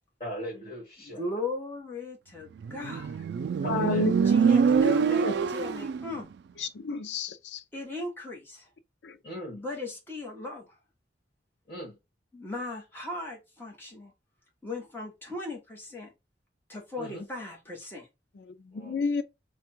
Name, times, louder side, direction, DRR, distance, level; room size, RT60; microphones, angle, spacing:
voice 1, 0.2-1.2 3.6-4.8 9.2-9.6 11.7-12.0 17.0-17.3 18.7-19.0, equal, 30° left, 2.0 m, -39 dB
voice 2, 1.0-3.2 4.2-6.3 7.7-8.7 9.6-10.8 12.3-14.1 14.6-16.1 16.7-18.1, left 2 dB, 10° left, 1.3 m, -38 dB
Motorcycle, 2.6-6.1, right 6 dB, 75° right, 0.3 m, -25 dB
voice 3, 3.6-4.1 4.4-4.5 4.8-4.9 5.2-5.3 6.6-7.6 9.0-9.1 18.4-19.2, left 4 dB, 85° left, 0.4 m, -30 dB
3.4 x 2.3 x 4.4 m
head